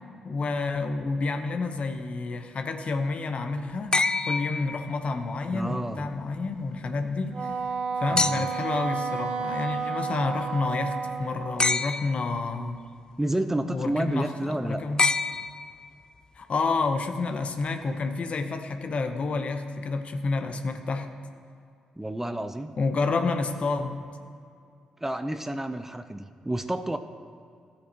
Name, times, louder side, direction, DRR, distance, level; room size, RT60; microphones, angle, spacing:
voice 1, 0.2-4.0 4.3-7.6 8.0-12.8 13.6-15.0 16.4-21.1 22.8-24.1, left 3 dB, 55° left, 7 dB, 0.8 m, -29 dB
sound 1, 3.9-5.3 8.2-8.8 11.6-12.4 15.0-16.0 17.6-17.7, left 3 dB, 30° left, 0.3 m, -27 dB
voice 2, 5.5-6.1 8.1-8.5 13.2-14.8 22.0-22.7 25.0-27.0, right 1 dB, 15° right, 9 dB, 0.6 m, -30 dB
Wind instrument woodwind instrument, 7.3-11.8, right 5 dB, 45° right, 0.9 m, -31 dB
14.0 x 8.5 x 2.9 m, 2.3 s
supercardioid pair, 45°, 3 cm